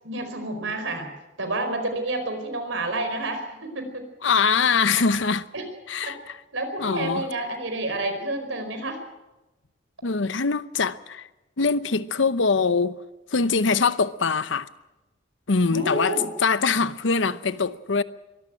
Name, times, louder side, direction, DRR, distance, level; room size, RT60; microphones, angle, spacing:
voice 1, 0.0-1.1 1.4-4.0 5.0-5.1 5.5-5.6 6.0-6.1 6.5-9.0 15.6-16.3, right 2 dB, 90° right, 4.8 m, -29 dB
voice 2, 4.2-5.4 5.9-6.4 6.8-7.2 10.0-11.3 11.6-13.0 13.3-14.7 15.5-16.1 16.4-18.0, left 4 dB, 80° left, 0.8 m, -23 dB
23.5 x 13.5 x 8.9 m
head